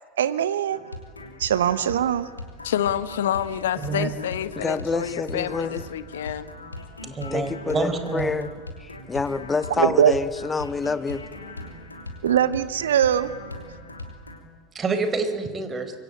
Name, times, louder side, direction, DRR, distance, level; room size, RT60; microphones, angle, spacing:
voice 1, 0.2-0.8 1.4-2.3 9.8-10.1 12.2-13.3, right 10 dB, 70° right, 15 dB, 1.0 m, -21 dB
sound 1, 0.7-14.4, left 2 dB, 85° left, 3.0 m, -40 dB
voice 2, 2.6-6.5, left 10 dB, 70° left, 16 dB, 1.1 m, -28 dB
voice 3, 4.6-5.8 7.0-8.5 8.8-11.2, left 4 dB, 20° left, 13 dB, 1.5 m, -27 dB
voice 4, 7.1-8.3 14.7-15.9, right 4 dB, 25° right, 9 dB, 4.3 m, -27 dB
25.5 x 23.5 x 8.6 m, 1.4 s
figure-of-eight pair, 75°, 0 cm